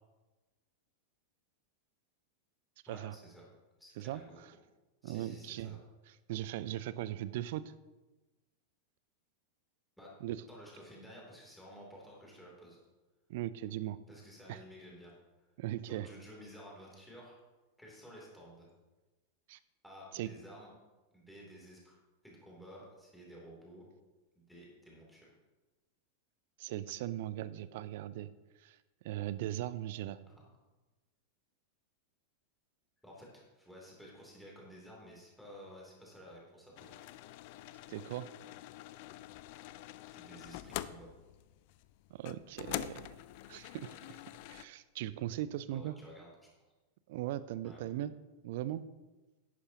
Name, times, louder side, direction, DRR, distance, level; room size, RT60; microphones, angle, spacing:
voice 1, 2.9-3.5 3.8-4.4 5.0-5.8 10.0-10.1 10.5-12.8 14.1-15.1 15.9-17.4 17.8-18.7 19.8-20.7 21.1-22.0 22.2-23.8 24.3-25.3 30.2-30.5 33.0-37.1 40.1-41.1 45.7-46.3 47.6-47.9, equal, ahead, -4 dB, 3.0 m, -53 dB
voice 2, 5.0-5.8 6.3-7.7 10.2-10.4 13.3-14.0 14.5-14.6 15.6-16.1 19.5-19.6 20.1-20.3 26.6-28.3 28.6-28.8 29.0-30.2 37.9-38.3 42.1-43.1 43.5-44.0 44.5-45.9 47.1-48.1 48.4-48.8, right 13 dB, 50° right, 16 dB, 0.4 m, -38 dB
sound 1, 36.8-44.7, left 15 dB, 45° left, 0.3 m, -46 dB
11.0 x 9.6 x 2.9 m, 1.1 s
figure-of-eight pair, 90°, 0 cm